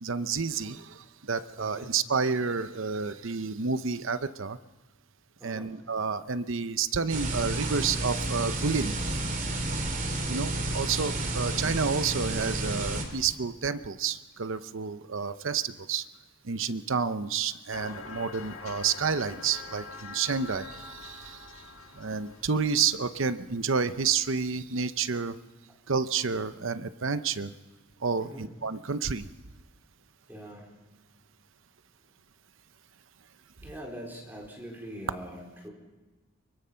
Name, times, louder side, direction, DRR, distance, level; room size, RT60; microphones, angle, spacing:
voice 1, 0.0-4.6 5.4-9.2 10.3-16.0 16.4-21.6 21.9-25.4 25.9-27.5 28.0-29.3, right 5 dB, 65° right, 12 dB, 0.8 m, -30 dB
voice 2, 1.6-1.9 5.4-5.7 28.2-28.5 30.3-30.7 33.6-35.7, equal, 10° right, -2 dB, 4.2 m, -43 dB
sound 1, 7.1-13.0, right 2 dB, 40° right, 3.0 m, -31 dB
sound 2, 17.7-24.7, left 4 dB, 75° left, 1.7 m, -45 dB
24.0 x 23.5 x 5.8 m, 1.2 s
head